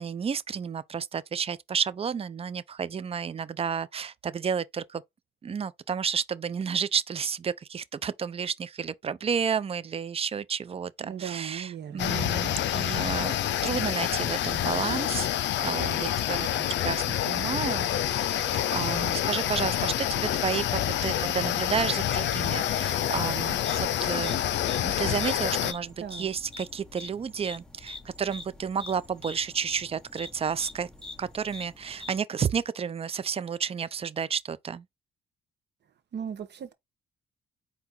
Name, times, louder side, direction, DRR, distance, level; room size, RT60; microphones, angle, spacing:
voice 1, 0.0-5.0 5.4-13.3 13.6-15.3 15.6-24.4 24.8-30.9 31.2-34.8, right 7 dB, 30° right, 0.4 m, -31 dB
voice 2, 11.0-12.3 26.0-26.3 36.1-36.7, right 8 dB, 60° right, 1.0 m, -37 dB
sound 1, 12.0-25.7, left 11 dB, 65° left, 0.5 m, -27 dB
sound 2, 23.6-32.2, left 2 dB, 5° left, 1.1 m, -45 dB
4.3 x 2.9 x 3.7 m
cardioid pair, 90°, 20 cm